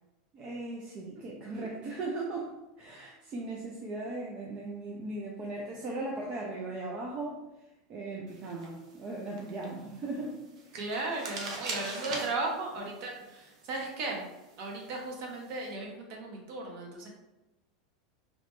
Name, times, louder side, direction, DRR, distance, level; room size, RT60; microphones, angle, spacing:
voice 1, 0.3-2.5 2.8-7.4 7.9-10.4 10.7-10.8, right 2 dB, 30° right, -1 dB, 0.4 m, -38 dB
sound 1, 8.3-15.7, right 3 dB, 90° right, 0.6 m, -44 dB
voice 2, 10.7-14.2 14.6-17.1, right 2 dB, 50° right, 0 dB, 0.8 m, -36 dB
2.9 x 2.1 x 3.0 m, 1.0 s
supercardioid pair, 140°, 3 cm